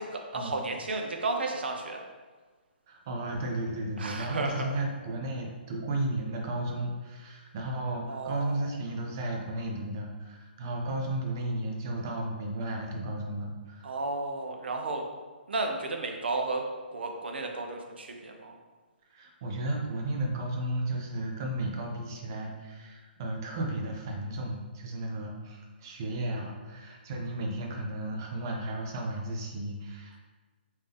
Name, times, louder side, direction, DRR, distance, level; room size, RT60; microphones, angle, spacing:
voice 1, 0.0-2.0 4.0-4.7 8.1-8.7 13.8-15.0 15.5-16.6 16.9-18.6, right 2 dB, 75° right, 3 dB, 0.6 m, -33 dB
voice 2, 2.9-13.9 19.1-30.2, right 1 dB, 20° right, 0 dB, 0.4 m, -34 dB
3.5 x 2.7 x 3.4 m, 1.4 s
hypercardioid pair, 180°, 6 cm